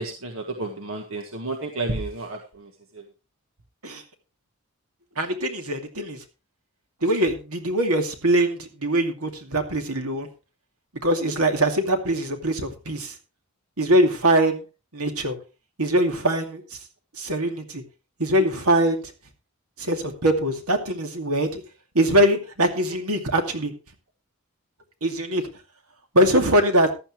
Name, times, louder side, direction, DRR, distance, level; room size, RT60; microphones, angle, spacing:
voice 1, 0.0-3.0, right 2 dB, 65° right, 4 dB, 1.6 m, -31 dB
voice 2, 5.2-6.2 7.0-10.3 11.0-13.1 13.8-14.6 14.9-15.4 15.8-16.8 17.2-17.8 18.2-19.0 19.8-21.6 21.9-23.7 25.0-25.4 26.1-26.9, right 1 dB, 80° right, 5 dB, 2.5 m, -22 dB
15.0 x 11.5 x 3.2 m, 0.31 s
head